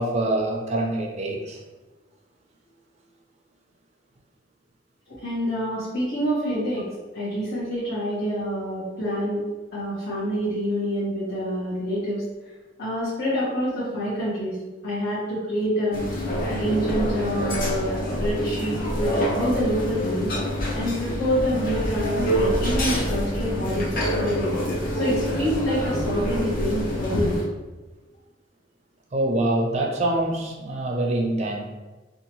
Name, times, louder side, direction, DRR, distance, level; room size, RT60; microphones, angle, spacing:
voice 1, 0.0-1.6 29.1-31.6, right 1 dB, 35° right, 1 dB, 0.4 m, -25 dB
voice 2, 5.1-9.4 9.7-12.2 12.8-14.6 14.8-17.9 18.2-20.3 20.7-24.5 24.9-27.4, equal, 85° left, -13 dB, 1.1 m, -27 dB
sound 1, 15.9-27.4, equal, 45° left, 0.6 m, -26 dB
2.8 x 2.4 x 2.9 m, 1.2 s
head